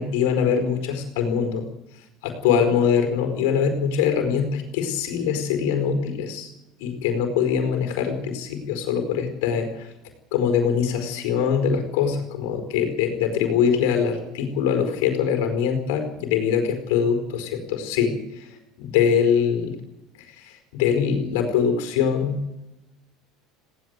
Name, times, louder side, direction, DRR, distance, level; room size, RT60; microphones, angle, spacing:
voice 1, 0.0-1.6 2.2-6.5 6.8-9.9 10.3-18.5 18.8-19.7 20.4-22.4, left 7 dB, 85° left, 6 dB, 4.6 m, -23 dB
19.0 x 17.0 x 8.1 m, 0.97 s
cardioid pair, 175°, 0 cm